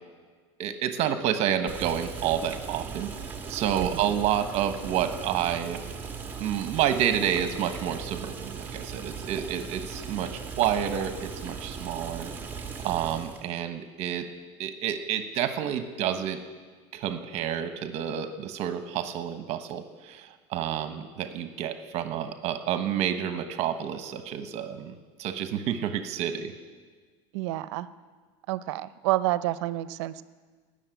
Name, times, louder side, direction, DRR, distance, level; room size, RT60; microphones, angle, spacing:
voice 1, 0.6-3.1 3.5-5.8 6.4-12.3 12.8-14.3 14.6-16.4 16.9-26.5, right 9 dB, 50° right, 8 dB, 1.1 m, -29 dB
Boiling, 1.7-13.4, right 5 dB, 15° right, 1.5 m, -38 dB
voice 2, 3.8-4.1 27.3-27.9 28.5-30.2, right 16 dB, 75° right, 15 dB, 0.7 m, -29 dB
19.0 x 6.6 x 9.3 m, 1.5 s
supercardioid pair, 145°, 15 cm